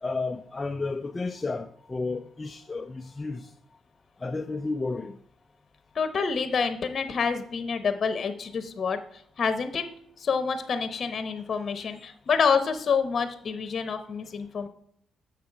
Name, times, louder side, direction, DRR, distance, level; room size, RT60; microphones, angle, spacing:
voice 1, 0.0-3.5 4.2-5.2, left 3 dB, 25° left, 0.4 m, -32 dB
voice 2, 5.9-9.0 9.4-9.8 10.2-14.7, left 5 dB, 50° left, 0.8 m, -27 dB
7.3 x 5.5 x 4.6 m
cardioid pair, 90°, 0 cm